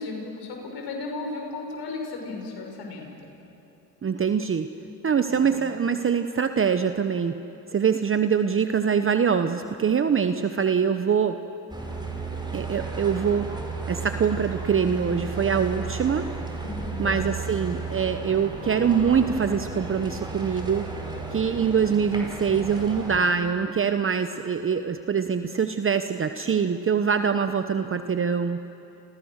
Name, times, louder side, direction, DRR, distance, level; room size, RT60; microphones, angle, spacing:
voice 1, 0.0-3.1 5.3-5.5 16.6-17.2, left 3 dB, 65° left, 2 dB, 6.4 m, -35 dB
voice 2, 4.0-4.7 5.0-7.4 7.7-11.4 12.5-13.5 13.9-16.3 17.0-20.9 21.3-28.6, right 6 dB, 30° right, 9 dB, 1.0 m, -24 dB
sound 1, 11.7-23.2, right 4 dB, 10° right, 5.2 m, -34 dB
30.0 x 27.5 x 6.6 m, 2.9 s
supercardioid pair, 80°, 44 cm